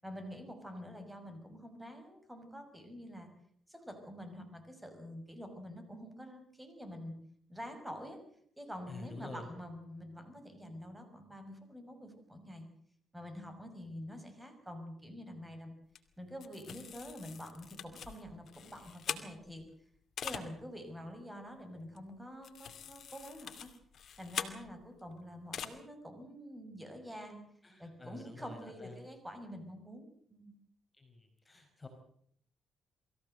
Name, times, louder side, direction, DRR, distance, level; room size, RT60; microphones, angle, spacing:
voice 1, 0.0-3.3 3.7-7.1 7.5-8.2 8.6-12.7 13.1-15.7 16.2-19.6 20.2-23.7 24.2-27.4 27.8-30.5, equal, 10° right, 7 dB, 6.0 m, -47 dB
voice 2, 8.9-9.5 27.6-28.9 31.0-31.9, left 2 dB, 15° left, 5 dB, 4.9 m, -48 dB
sound 1, 16.0-16.1 16.4-19.7 20.2-20.5 22.0-22.1 22.4-25.0 25.5-25.7, left 8 dB, 60° left, 2.4 m, -43 dB
24.0 x 15.5 x 7.9 m, 0.66 s
cardioid pair, 90°, 0 cm